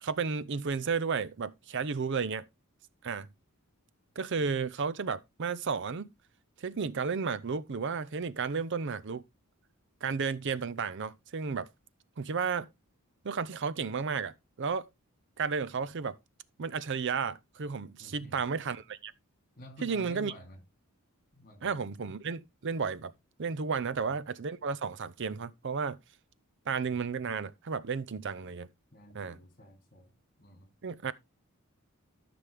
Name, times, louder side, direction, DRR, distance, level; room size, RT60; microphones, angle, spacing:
voice 1, 0.0-2.4 3.0-3.3 4.2-6.1 6.6-9.2 10.0-11.7 12.2-12.7 13.2-14.9 15.4-16.2 16.6-19.1 19.8-20.3 21.6-23.1 23.4-26.0 26.7-28.7 29.1-29.4 30.8-31.1, right 5 dB, 55° right, 0.6 m, -33 dB
voice 2, 18.0-18.4 19.6-20.6 21.3-21.7 28.9-30.7, left 1 dB, 40° left, 2.7 m, -50 dB
13.5 x 6.1 x 3.5 m
head